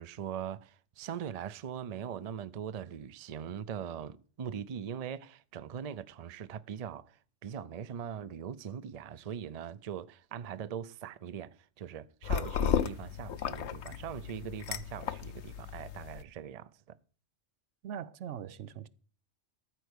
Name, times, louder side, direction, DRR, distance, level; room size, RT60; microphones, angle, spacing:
voice 1, 0.0-17.0, right 8 dB, 45° right, 0.5 m, -41 dB
sound 1, 12.2-16.2, left 8 dB, 75° left, 1.0 m, -34 dB
voice 2, 17.8-18.9, right 9 dB, 85° right, 1.0 m, -41 dB
13.5 x 4.6 x 8.1 m
omnidirectional pair, 1.2 m